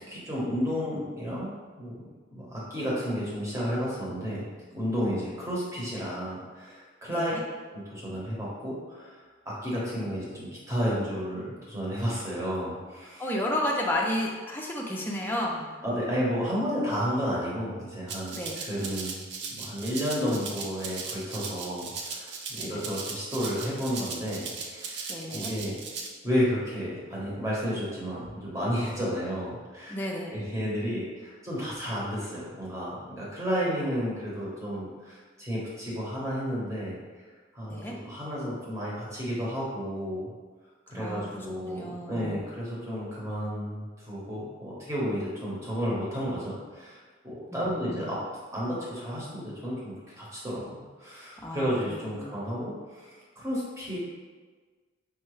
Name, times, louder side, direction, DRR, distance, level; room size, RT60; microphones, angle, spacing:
voice 1, 0.1-2.0 2.3-4.5 4.7-7.3 7.7-9.2 9.5-13.2 15.8-19.2 19.5-25.1 25.3-25.8 26.2-30.0 30.3-37.0 37.5-40.3 40.9-47.0 47.2-48.2 48.5-54.0, equal, 15° right, -7 dB, 0.9 m, -32 dB
voice 2, 7.1-7.4 13.2-15.7 18.3-18.6 22.6-22.8 25.1-25.5 29.9-30.4 37.7-37.9 40.9-42.4 47.5-48.1 51.4-52.3, left 1 dB, 10° left, -2 dB, 0.4 m, -32 dB
Rattle (instrument), 18.1-26.1, right 5 dB, 55° right, 0.4 m, -38 dB
4.6 x 2.2 x 3.1 m, 1.4 s
head